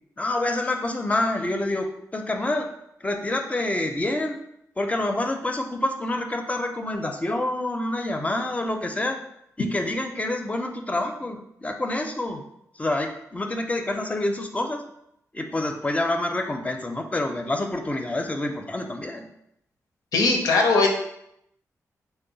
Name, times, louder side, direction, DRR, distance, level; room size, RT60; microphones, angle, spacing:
voice 1, 0.2-2.7 3.0-4.4 4.8-9.2 9.6-12.4 12.8-14.8 15.3-19.3, left 2 dB, 20° left, 4 dB, 0.4 m, -27 dB
voice 2, 20.1-20.9, left 3 dB, 85° left, 2 dB, 0.5 m, -19 dB
3.0 x 2.1 x 3.9 m, 0.78 s
cardioid pair, 75°, 6 cm